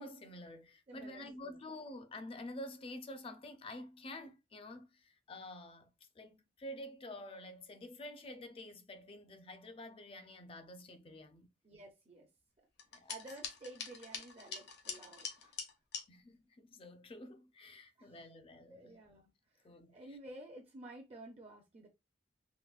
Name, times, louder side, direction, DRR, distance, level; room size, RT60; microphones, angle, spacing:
voice 1, 0.0-11.5 12.9-13.2 16.1-19.0 19.6-20.2, left 1 dB, 30° left, 0.4 m, -49 dB
voice 2, 0.9-1.6 11.6-12.3 13.1-15.6 18.0-18.2 18.7-21.9, right 2 dB, 35° right, 0.5 m, -52 dB
sound 1, 12.8-16.0, left 6 dB, 65° left, 0.7 m, -45 dB
3.8 x 2.1 x 2.3 m
head